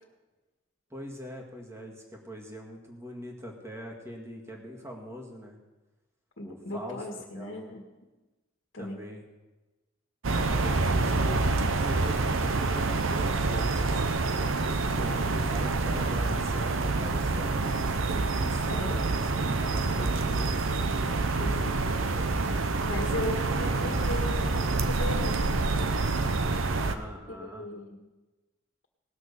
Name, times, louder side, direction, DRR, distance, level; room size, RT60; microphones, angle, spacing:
voice 1, 0.9-5.6 6.4-7.0 7.3-7.6 8.8-9.2 10.3-14.0 15.0-20.6 26.8-27.7, equal, 15° right, 0 dB, 2.0 m, -42 dB
voice 2, 6.4-7.8 8.7-9.0 18.7-19.0 21.4-21.8 22.8-25.6 27.3-28.1, left 1 dB, 65° left, 0 dB, 1.7 m, -37 dB
sound 1, 10.2-27.0, right 3 dB, 80° right, 0.8 m, -27 dB
18.5 x 6.4 x 6.8 m, 1.2 s
head